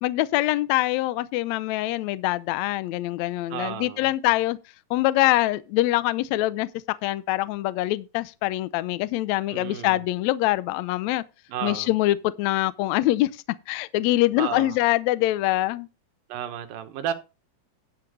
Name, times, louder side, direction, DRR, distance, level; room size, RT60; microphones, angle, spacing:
voice 1, 0.0-4.6 4.9-11.2 11.6-15.9, left 16 dB, 85° left, 1.6 m, -24 dB
voice 2, 3.5-4.1 9.5-10.0 11.5-11.9 14.4-14.8 16.3-17.1, right 10 dB, 80° right, 2.8 m, -32 dB
11.5 x 4.8 x 6.2 m
omnidirectional pair, 4.0 m